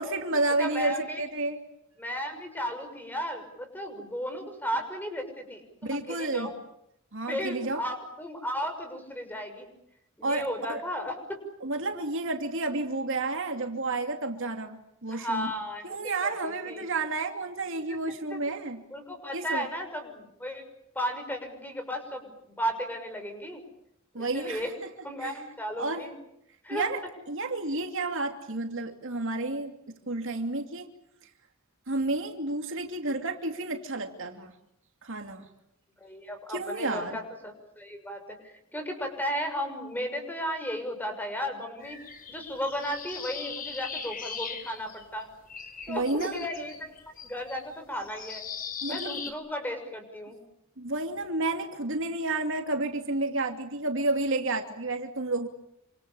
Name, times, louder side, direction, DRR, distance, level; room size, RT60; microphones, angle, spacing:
voice 1, 0.0-1.6 5.8-6.5 7.1-7.8 10.2-10.8 11.6-15.5 15.8-18.8 19.3-19.7 24.1-24.9 25.2-25.3 25.8-26.0 26.7-27.0 27.3-30.9 31.9-34.5 35.0-35.5 36.5-37.2 45.9-46.5 48.8-49.2 50.8-55.5, right 2 dB, 65° right, 5 dB, 2.7 m, -31 dB
voice 2, 0.6-1.2 2.0-6.5 7.3-9.7 10.2-11.4 15.1-16.9 17.9-18.0 18.3-18.4 18.9-20.6 20.9-23.6 24.2-24.7 25.0-26.1 26.6-26.9 36.0-42.0 42.3-45.3 45.9-46.9 47.2-48.4 48.8-50.4, equal, 10° left, 6 dB, 6.3 m, -35 dB
sound 1, 41.8-45.2 45.5-49.3, left 6 dB, 40° left, 3.8 m, -40 dB
29.0 x 26.5 x 7.1 m, 0.78 s
head